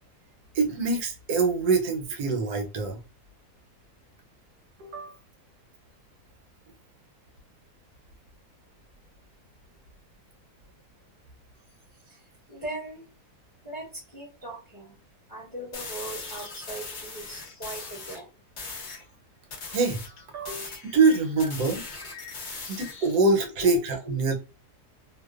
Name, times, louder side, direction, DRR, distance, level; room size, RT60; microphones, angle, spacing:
voice 1, 0.5-3.0 4.8-5.1 19.7-20.0 20.3-21.8 22.7-24.4, right 3 dB, 75° right, 1.2 m, -24 dB
voice 2, 12.5-13.0 13.6-15.0 15.3-18.3 19.7-19.8 21.4-21.5 23.6-23.7 24.0-24.1, right 2 dB, 20° left, 0.6 m, -39 dB
sound 1, 15.7-18.2 18.6-19.0 19.5-23.2, left 4 dB, 70° left, 0.4 m, -39 dB
2.8 x 2.1 x 2.3 m
omnidirectional pair, 1.7 m